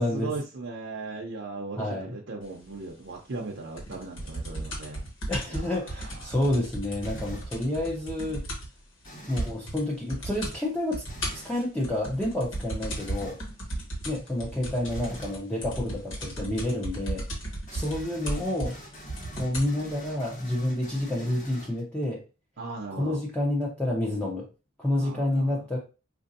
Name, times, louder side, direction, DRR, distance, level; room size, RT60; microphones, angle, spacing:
voice 1, 0.0-5.1 5.5-5.9 6.2-6.3 13.7-13.9 22.6-23.2 24.9-25.6, right 3 dB, 60° right, -1 dB, 0.6 m, -38 dB
voice 2, 1.8-2.1 5.3-8.5 9.3-11.0 11.3-13.4 14.0-17.3 17.7-18.8 19.4-22.2 23.0-24.5 24.8-25.8, left 1 dB, 5° left, -4 dB, 0.6 m, -29 dB
sound 1, 3.8-8.8 9.0-9.1 9.4-9.8 10.1-10.6 10.9-19.8 20.5-20.6, right 1 dB, 75° left, 1.5 m, -35 dB
sound 2, 7.0-7.6 9.0-9.6 11.1-11.5 13.0-13.5 14.9-15.4 17.7-22.0, equal, 40° left, 1.2 m, -45 dB
4.8 x 2.6 x 2.6 m, 0.32 s
head